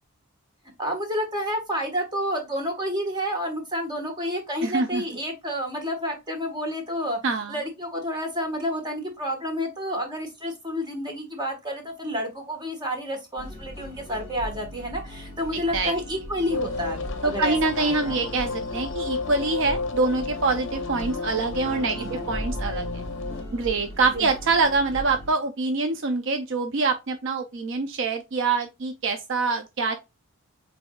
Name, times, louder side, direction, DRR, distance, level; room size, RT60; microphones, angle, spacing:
voice 1, 0.8-7.2 7.5-18.2 21.9-22.3 24.1-24.3, equal, 20° right, 1.3 m, -30 dB
voice 2, 4.6-5.0 7.2-7.5 15.7-15.9 17.2-22.9 23.5-30.0, right 3 dB, 55° right, 0.5 m, -25 dB
sound 1, 13.4-25.3, equal, 10° left, 2.4 m, -38 dB
sound 2, 16.5-23.4, left 3 dB, 55° left, 0.6 m, -32 dB
7.7 x 2.6 x 2.3 m
head